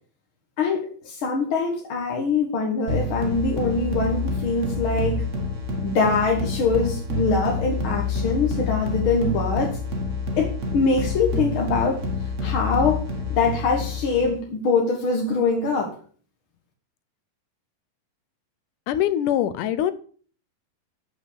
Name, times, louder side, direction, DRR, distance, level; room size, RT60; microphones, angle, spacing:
voice 1, 0.6-5.2 5.8-9.7 10.4-12.0 12.4-13.0 13.3-15.9, left 4 dB, 50° left, 1 dB, 1.8 m, -23 dB
sound 1, 2.9-14.4, left 3 dB, 40° right, 1.0 m, -28 dB
voice 2, 18.9-19.9, left 11 dB, 75° left, 14 dB, 2.1 m, -23 dB
12.5 x 5.9 x 6.9 m, 0.44 s
omnidirectional pair, 4.1 m